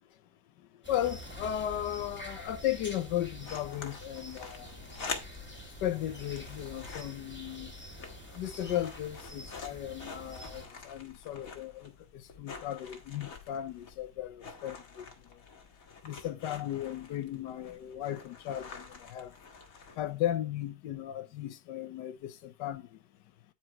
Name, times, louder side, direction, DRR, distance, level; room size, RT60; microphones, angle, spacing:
voice 1, 0.6-4.9 5.8-7.7 8.3-15.4 16.0-19.4 20.0-23.0, left 12 dB, 85° left, 1.4 m, -36 dB
sound 1, 0.8-10.7, equal, 5° left, 1.8 m, -47 dB
sound 2, 1.6-20.4, left 5 dB, 55° left, 1.8 m, -47 dB
9.8 x 4.5 x 4.4 m
omnidirectional pair, 1.8 m